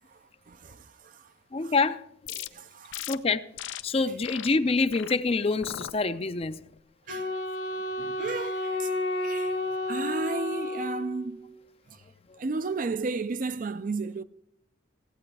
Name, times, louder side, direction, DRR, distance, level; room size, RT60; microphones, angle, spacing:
voice 1, 0.5-1.3 1.6-1.7 2.5-3.1 7.1-7.3 8.0-8.9 9.2-9.5 9.9-11.5 12.4-14.2, right 3 dB, 45° right, 0.4 m, -33 dB
voice 2, 1.5-2.0 2.3-2.4 3.1-3.5 3.8-6.6 12.3-12.4, left 3 dB, 30° left, 0.5 m, -26 dB
sound 1, 2.3-2.5 2.9-3.2 3.6-3.8 4.2-4.5 4.9-5.2 5.6-5.9 6.4-6.8, left 11 dB, 90° left, 0.6 m, -38 dB
Wind instrument woodwind instrument, 7.1-11.5, left 1 dB, 75° left, 1.8 m, -31 dB
16.0 x 8.7 x 4.7 m
head